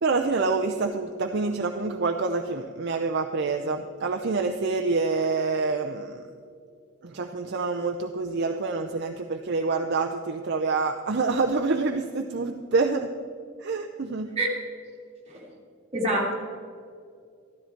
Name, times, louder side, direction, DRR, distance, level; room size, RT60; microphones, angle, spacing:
voice 1, 0.0-6.2 7.0-13.1 13.6-14.3, right 3 dB, 55° right, 4 dB, 0.6 m, -27 dB
voice 2, 15.9-16.3, right 1 dB, 30° right, -3 dB, 2.4 m, -26 dB
13.5 x 12.5 x 4.5 m, 2.3 s
head